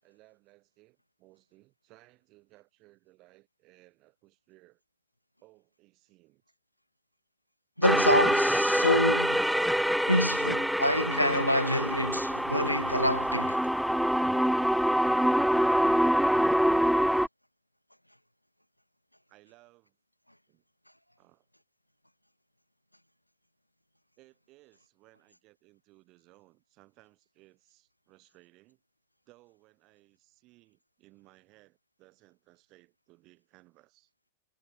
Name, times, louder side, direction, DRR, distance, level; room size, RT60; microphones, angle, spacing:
voice 1, 0.0-4.8 5.4-6.4 19.3-20.0 20.5-20.6 21.2-21.5 24.2-28.8 29.3-34.1, right 21 dB, 40° right, 7.0 m, -61 dB
voice 2, 7.8-9.5 10.1-13.6, equal, 90° left, 0.4 m, -27 dB
sound 1, 7.8-17.3, equal, ahead, 0.4 m, -25 dB
figure-of-eight pair, 90°, 0 cm